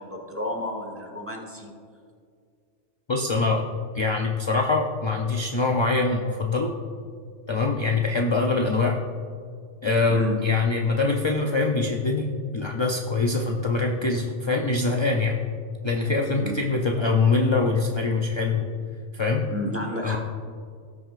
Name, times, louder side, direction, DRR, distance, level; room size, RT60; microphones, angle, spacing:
voice 1, 0.0-1.8 10.1-10.4 16.4-16.6 19.5-20.2, equal, 10° right, 0 dB, 1.1 m, -31 dB
voice 2, 3.1-3.6 3.9-6.7 7.5-9.0 9.8-15.4 15.8-18.7 19.1-19.4 20.0-20.2, left 3 dB, 45° left, 1 dB, 0.3 m, -24 dB
17.0 x 6.2 x 2.5 m, 2.2 s
omnidirectional pair, 1.2 m